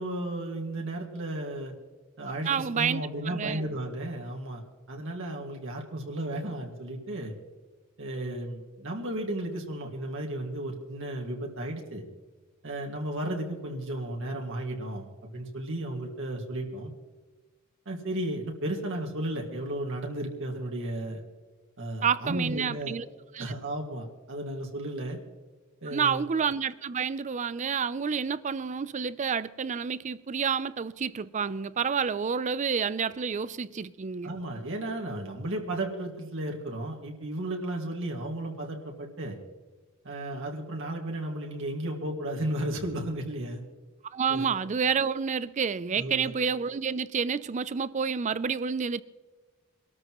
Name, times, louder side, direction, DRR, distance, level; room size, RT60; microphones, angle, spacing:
voice 1, 0.0-1.7 2.2-4.6 4.9-7.3 8.0-12.0 12.6-16.9 17.9-21.2 21.8-22.9 23.4-25.2 25.8-26.2 34.2-39.4 40.0-43.6 44.3-44.5 46.0-46.3, right 1 dB, 65° right, 2.0 m, -34 dB
voice 2, 2.3-3.6 22.0-23.0 23.3-23.5 25.9-34.3 44.1-49.0, right 6 dB, 35° right, 0.4 m, -29 dB
24.0 x 13.0 x 3.1 m
head